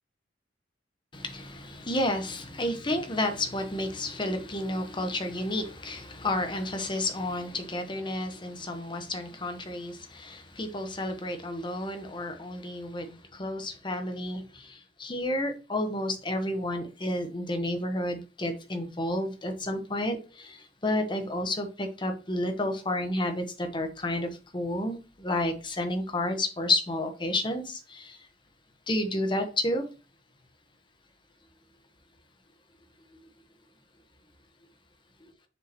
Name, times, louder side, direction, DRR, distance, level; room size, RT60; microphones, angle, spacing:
voice 1, 1.1-28.3 28.9-29.8, left 1 dB, 25° left, 1.1 m, -31 dB
6.7 x 5.0 x 3.0 m
head